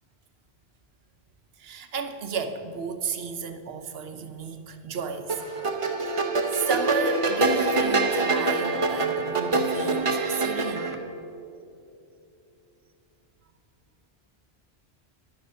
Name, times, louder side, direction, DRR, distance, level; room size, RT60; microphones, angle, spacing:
voice 1, 1.6-5.4 6.0-11.0, right 6 dB, 70° right, 8 dB, 1.0 m, -33 dB
sound 1, 5.3-11.0, right 3 dB, 35° right, 0.7 m, -25 dB
11.0 x 6.6 x 6.4 m, 2.6 s
omnidirectional pair, 1.1 m